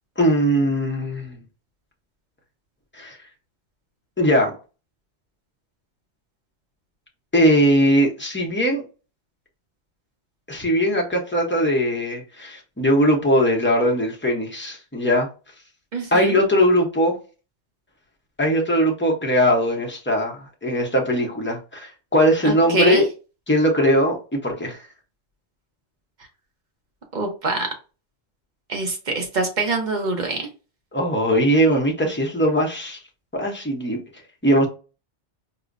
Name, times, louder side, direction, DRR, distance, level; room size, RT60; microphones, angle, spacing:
voice 1, 0.2-1.4 2.9-3.2 4.2-4.5 7.3-8.8 10.5-15.3 16.1-17.2 18.4-23.1 23.5-24.8 30.9-33.0 33.3-34.0 34.4-34.7, equal, 10° left, 0.6 m, -20 dB
voice 2, 15.9-16.3 22.4-23.1 27.1-27.7 28.7-30.5, right 3 dB, 45° right, 0.9 m, -24 dB
4.9 x 2.1 x 2.5 m
omnidirectional pair, 1.2 m